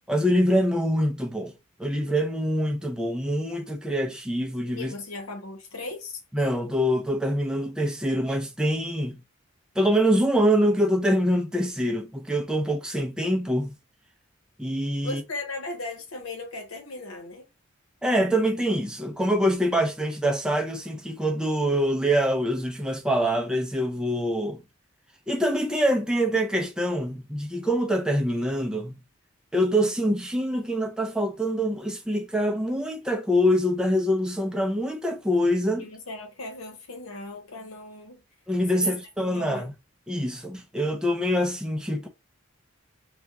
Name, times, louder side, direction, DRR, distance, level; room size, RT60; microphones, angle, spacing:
voice 1, 0.1-1.5 1.8-4.9 6.3-9.2 9.8-13.7 14.6-15.2 18.0-24.6 25.3-29.0 29.5-35.8 38.5-39.7 40.1-42.1, equal, 5° right, 0.4 m, -25 dB
voice 2, 4.8-6.2 15.0-17.5 35.8-38.2 38.7-39.0 39.3-39.7, left 2 dB, 90° left, 1.0 m, -37 dB
2.9 x 2.3 x 3.4 m
head